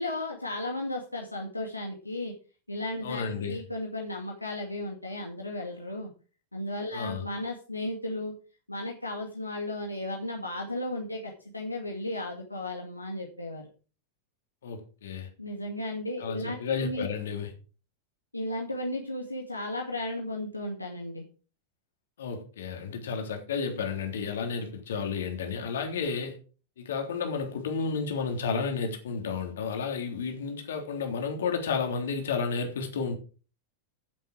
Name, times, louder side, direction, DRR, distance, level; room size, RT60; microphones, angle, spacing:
voice 1, 0.0-2.3 2.7-6.1 6.5-8.3 8.7-13.7 15.4-17.1 18.3-21.3, left 1 dB, 85° left, 2.2 m, -35 dB
voice 2, 3.0-3.6 6.9-7.3 14.6-15.3 16.2-17.5 22.2-26.4 26.8-33.2, left 5 dB, 60° left, 3.4 m, -32 dB
15.5 x 7.6 x 4.9 m
figure-of-eight pair, 90°, 0 cm